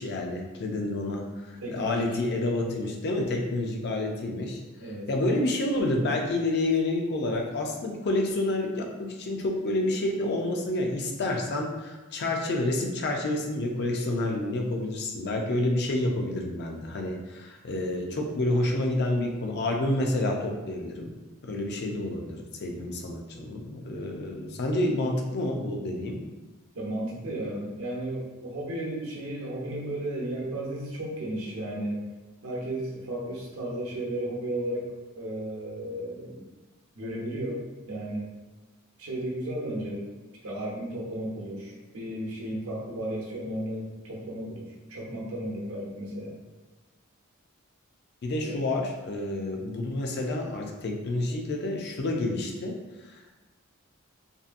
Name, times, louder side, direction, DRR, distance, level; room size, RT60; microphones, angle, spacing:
voice 1, 0.0-4.6 5.1-21.1 21.4-26.2 48.2-52.8 53.0-53.4, left 2 dB, 50° left, 2 dB, 0.4 m, -29 dB
voice 2, 1.6-2.0 4.8-5.1 26.7-32.0 32.4-36.4 36.9-38.3 39.0-40.0 40.4-46.4 48.4-48.6, right 1 dB, 75° right, -4 dB, 0.8 m, -34 dB
2.7 x 2.5 x 2.4 m, 1.2 s
head